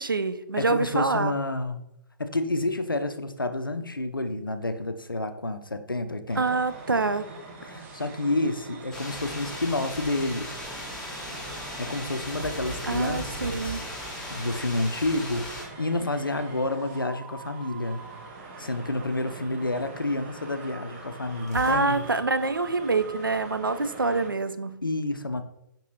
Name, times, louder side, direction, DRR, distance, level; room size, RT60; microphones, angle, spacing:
voice 1, 0.0-1.3 6.4-7.3 12.9-13.8 21.5-24.8, right 3 dB, 85° right, 11 dB, 0.4 m, -26 dB
voice 2, 0.6-1.8 2.2-6.4 7.6-10.5 11.5-18.0 18.6-22.1 24.8-25.4, left 2 dB, 90° left, 9 dB, 0.4 m, -29 dB
sound 1, 6.3-24.3, right 3 dB, 35° right, 0.8 m, -44 dB
sound 2, 8.9-15.6, left 1 dB, 5° left, 1.0 m, -38 dB
sound 3, 12.3-15.7 21.4-23.5, right 3 dB, 55° right, 1.3 m, -42 dB
5.2 x 2.8 x 3.0 m, 0.82 s
figure-of-eight pair, 125°, 11 cm